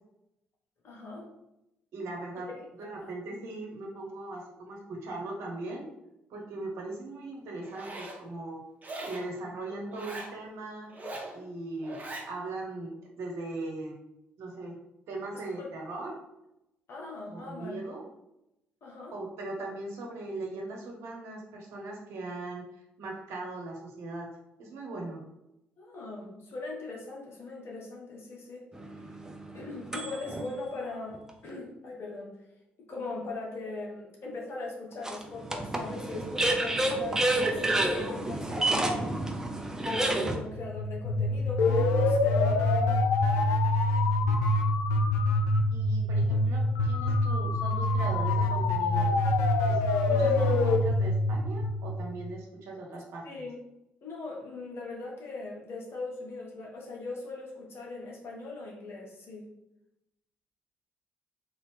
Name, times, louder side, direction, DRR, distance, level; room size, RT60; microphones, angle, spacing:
voice 1, 0.8-1.3 2.5-3.1 15.3-15.7 16.9-17.8 18.8-19.1 25.8-28.6 29.0-29.1 29.5-32.3 32.9-39.2 39.8-43.0 53.2-53.6 54.0-59.5, left 3 dB, 55° left, -1 dB, 1.2 m, -40 dB
voice 2, 1.9-5.8 6.3-8.6 9.1-10.9 11.3-12.0 12.3-14.0 14.4-14.8 15.1-16.2 17.3-18.0 19.1-22.7 23.0-24.3 24.6-25.2 45.7-49.2 49.7-49.8 50.1-53.4, right 2 dB, 65° right, 0 dB, 1.0 m, -39 dB
Zipper (clothing), 7.6-8.2 8.8-9.3 9.9-10.3 10.9-11.3 11.8-12.3, right 2 dB, 35° right, 1.1 m, -40 dB
sound 1, 28.7-30.4 31.1-31.2 35.0-40.4, right 1 dB, 10° right, 0.7 m, -29 dB
sound 2, 40.6-52.4, left 2 dB, 75° left, 0.5 m, -25 dB
3.8 x 2.8 x 3.3 m, 0.88 s
hypercardioid pair, 50°, 5 cm